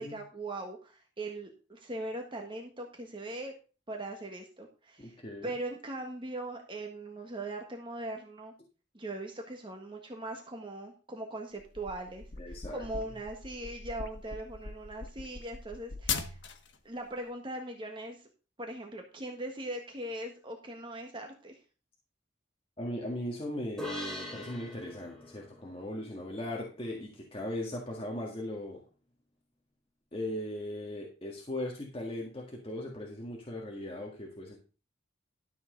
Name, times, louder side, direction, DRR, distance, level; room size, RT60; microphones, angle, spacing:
voice 1, 0.0-3.5 3.9-5.2 5.4-8.5 8.9-16.4 16.8-18.3 18.6-21.6, right 1 dB, 30° right, 2 dB, 1.4 m, -40 dB
voice 2, 5.0-5.5 12.4-12.8 22.8-28.8 30.1-34.6, left 1 dB, 30° left, -2 dB, 1.8 m, -38 dB
sound 1, 11.6-16.8, left 5 dB, 90° left, 1.4 m, -39 dB
sound 2, 23.8-27.3, left 1 dB, 5° left, 3.2 m, -44 dB
12.5 x 7.5 x 3.9 m, 0.35 s
head